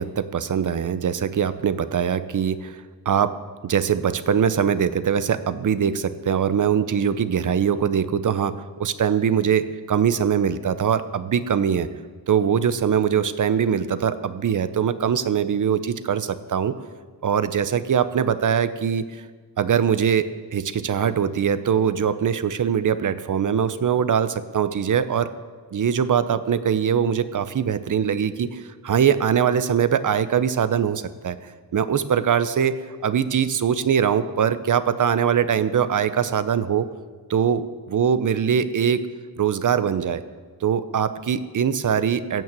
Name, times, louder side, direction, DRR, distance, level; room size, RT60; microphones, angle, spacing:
voice 1, 0.0-2.8 3.1-11.9 12.3-16.7 17.2-19.2 19.6-25.3 25.7-36.9 37.3-39.0 39.4-40.2 40.6-42.4, right 8 dB, 50° right, 13 dB, 0.8 m, -22 dB
16.0 x 5.9 x 7.6 m, 1.5 s
cardioid pair, 80°, 41 cm